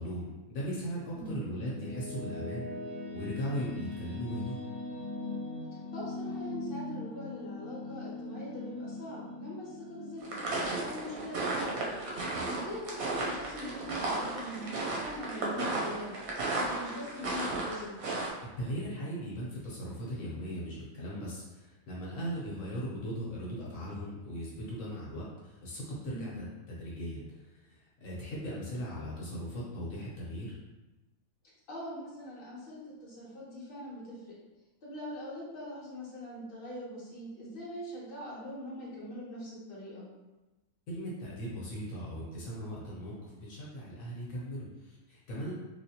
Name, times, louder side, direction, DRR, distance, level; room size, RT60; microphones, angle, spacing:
voice 1, 0.0-2.7 3.1-4.6 12.2-12.4 18.6-30.5 40.9-45.5, equal, 75° left, -6 dB, 1.2 m, -38 dB
sound 1, 1.2-12.2, left 2 dB, 45° right, 1.5 m, -41 dB
voice 2, 5.9-11.9 12.2-16.2 16.5-18.0 26.1-26.4 31.7-34.2 34.8-40.1, left 1 dB, 45° left, -6 dB, 1.1 m, -42 dB
sound 2, 10.2-18.3, right 2 dB, 85° right, 1.2 m, -34 dB
3.2 x 2.6 x 2.8 m, 1.1 s
omnidirectional pair, 1.5 m